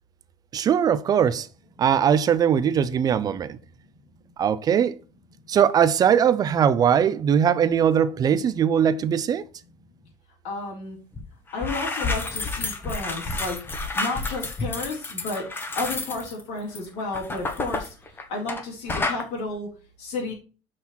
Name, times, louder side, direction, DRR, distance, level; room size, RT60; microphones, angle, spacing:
voice 1, 0.5-1.5 1.8-3.6 4.4-5.0 5.5-9.4, right 8 dB, 35° right, 0.5 m, -20 dB
voice 2, 10.4-11.0 11.5-13.6 13.9-15.5 15.8-17.9 18.3-19.7 20.0-20.3, left 3 dB, 75° left, 3.7 m, -32 dB
sound 1, 11.1-11.2 11.5-18.6 18.9-19.2, left 3 dB, 20° left, 1.3 m, -30 dB
6.3 x 5.7 x 4.3 m
cardioid pair, 140°, 12 cm